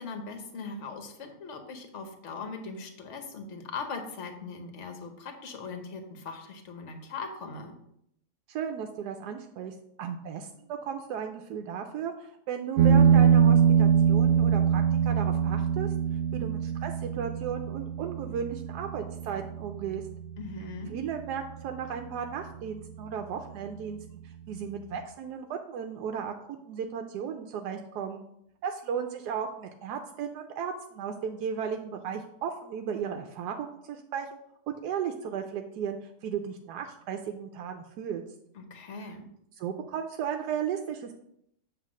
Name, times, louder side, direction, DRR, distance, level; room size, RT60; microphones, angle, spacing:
voice 1, 0.0-7.7 20.4-21.0 38.5-39.2, left 4 dB, 50° left, 6 dB, 1.2 m, -40 dB
voice 2, 8.5-15.9 16.3-20.0 20.9-28.2 28.6-34.3 34.7-38.2 39.6-41.2, right 7 dB, 85° right, 5 dB, 1.2 m, -35 dB
sound 1, 12.8-21.8, right 7 dB, 65° right, 0.9 m, -24 dB
7.5 x 3.1 x 6.1 m, 0.75 s
omnidirectional pair, 1.7 m